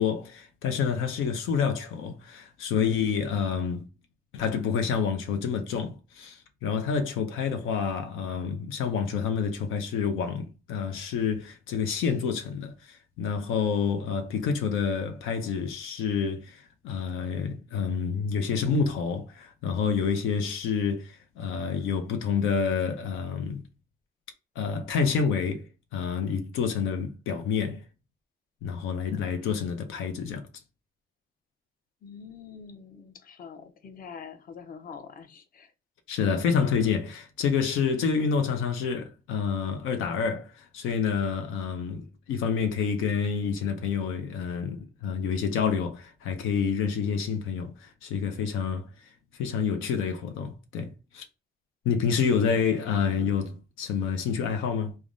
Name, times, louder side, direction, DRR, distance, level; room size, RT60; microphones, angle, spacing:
voice 1, 0.0-3.9 4.3-23.6 24.6-27.8 28.6-30.5 36.1-48.9 49.3-51.2 51.8-55.0, left 6 dB, 90° left, 0.5 m, -28 dB
voice 2, 32.0-35.7, left 6 dB, 45° left, 0.6 m, -45 dB
3.4 x 2.1 x 2.4 m
cardioid pair, 90°, 20 cm